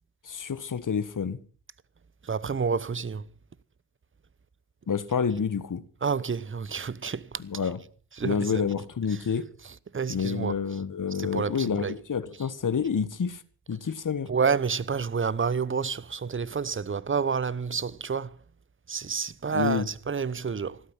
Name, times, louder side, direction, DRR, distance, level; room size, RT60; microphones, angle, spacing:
voice 1, 0.2-1.4 4.9-5.8 7.4-7.8 8.2-9.4 10.1-13.4 13.7-14.3 19.5-19.9, left 6 dB, 40° left, 1.7 m, -28 dB
voice 2, 2.2-3.3 6.0-7.4 8.2-8.5 9.9-10.6 11.1-11.9 14.3-18.3 18.9-20.8, right 5 dB, 25° right, 1.0 m, -29 dB
15.5 x 13.0 x 5.9 m
hypercardioid pair, 45°, 48 cm